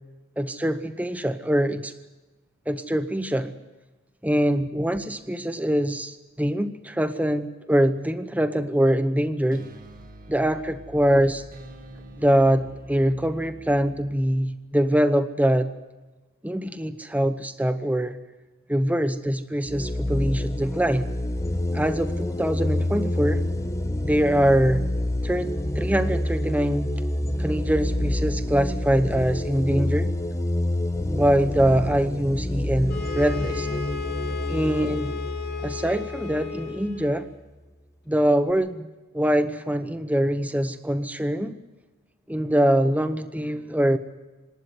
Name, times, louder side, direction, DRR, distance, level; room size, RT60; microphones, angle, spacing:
voice 1, 0.4-1.9 2.7-3.6 4.2-9.7 10.3-11.4 12.2-15.7 16.4-18.2 18.7-21.1 21.7-23.4 24.0-24.9 25.2-26.9 27.4-30.1 31.1-33.7 34.5-35.1 35.6-37.3 38.1-38.9 39.1-41.6 42.3-44.0, equal, 5° right, 10 dB, 0.8 m, -23 dB
sound 1, 9.1-14.2, equal, 40° right, 2.1 m, -46 dB
sound 2, 19.7-37.1, left 1 dB, 15° left, 1.2 m, -28 dB
sound 3, 32.9-37.3, left 8 dB, 50° left, 3.7 m, -34 dB
26.5 x 12.5 x 9.6 m, 1.2 s
head